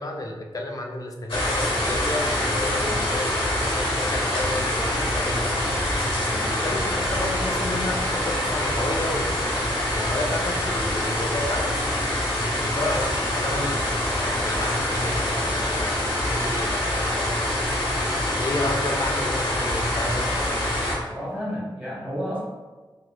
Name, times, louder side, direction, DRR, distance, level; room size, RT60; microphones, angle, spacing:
voice 1, 0.0-5.7 6.3-11.7 12.6-17.6 18.2-20.4, left 1 dB, 40° left, 2 dB, 0.4 m, -31 dB
sound 1, 1.3-21.0, left 1 dB, 80° left, 1.0 m, -25 dB
voice 2, 21.1-22.4, equal, 15° right, -10 dB, 1.2 m, -31 dB
4.0 x 2.7 x 2.3 m, 1.3 s
wide cardioid pair, 105°, 9 cm